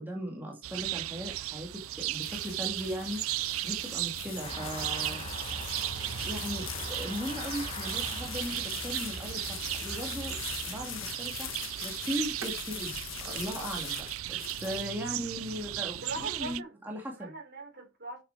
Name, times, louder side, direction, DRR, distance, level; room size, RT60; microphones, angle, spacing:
voice 1, 0.0-5.9 6.2-10.4 10.7-13.0 13.2-14.0 14.3-17.3, equal, 10° right, 2.1 m, -38 dB
sound 1, 0.6-16.6, right 15 dB, 75° right, 0.4 m, -36 dB
sound 2, 1.5-15.3, left 9 dB, 65° left, 1.5 m, -42 dB
sound 3, 4.4-10.8, left 1 dB, 30° left, 1.6 m, -43 dB
voice 2, 13.2-13.7 14.6-15.1 16.0-18.2, right 2 dB, 55° right, 4.2 m, -42 dB
7.5 x 6.8 x 4.6 m
head